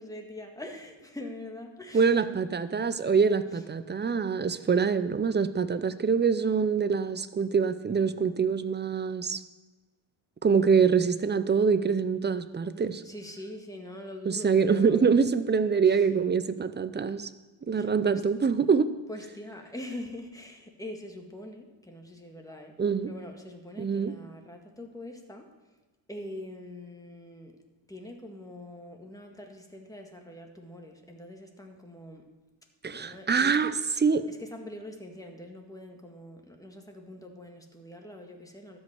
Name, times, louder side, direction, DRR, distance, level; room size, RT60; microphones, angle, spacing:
voice 1, 0.0-2.2 13.0-15.4 15.9-16.0 17.7-18.2 19.1-22.7 23.1-25.5 26.1-27.6 27.9-32.3 32.9-33.8 34.3-38.8, left 1 dB, 5° left, 2 dB, 1.7 m, -43 dB
voice 2, 1.9-9.4 10.4-13.0 14.3-17.3 17.7-18.9 22.8-23.1 23.8-24.1 32.8-33.7 34.0-34.3, right 5 dB, 20° right, 12 dB, 0.6 m, -25 dB
12.5 x 5.4 x 8.0 m, 1.2 s
cardioid pair, 90°, 49 cm